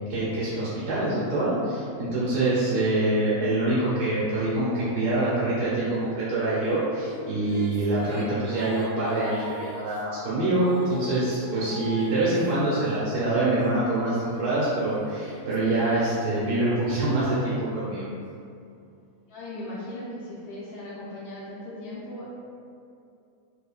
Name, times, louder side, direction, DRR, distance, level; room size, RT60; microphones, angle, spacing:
voice 1, 0.1-18.1, right 2 dB, 90° right, -10 dB, 1.3 m, -25 dB
Female singing, 6.7-13.6 14.3-18.0, equal, 70° right, 0.8 m, -43 dB
voice 2, 19.3-22.3, left 1 dB, 70° left, -9 dB, 1.1 m, -38 dB
4.5 x 2.5 x 2.4 m, 2.5 s
omnidirectional pair, 1.7 m